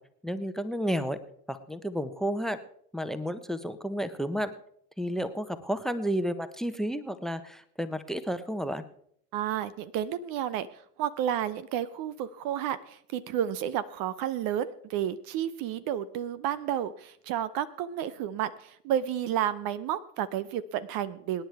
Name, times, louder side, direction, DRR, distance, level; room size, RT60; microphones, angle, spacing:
voice 1, 0.2-1.2 1.5-2.6 2.9-4.5 5.0-8.8, equal, ahead, 13 dB, 1.1 m, -31 dB
voice 2, 9.3-10.7 11.0-21.4, right 10 dB, 45° right, 16 dB, 0.8 m, -31 dB
25.5 x 10.5 x 3.5 m, 0.69 s
figure-of-eight pair, 75°, 48 cm